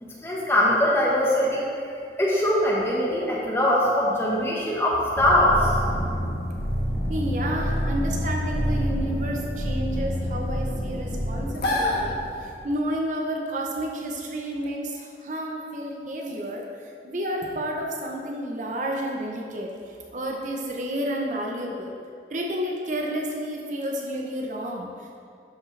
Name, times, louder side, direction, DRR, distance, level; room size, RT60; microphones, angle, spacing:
voice 1, 0.0-1.9 2.2-5.7, left 1 dB, 15° left, -5 dB, 1.2 m, -22 dB
sound 1, 5.1-12.6, equal, 65° left, 1.3 m, -27 dB
voice 2, 7.1-21.9 22.3-25.2, equal, 45° right, 0 dB, 0.7 m, -31 dB
12.0 x 5.0 x 3.2 m, 2.4 s
head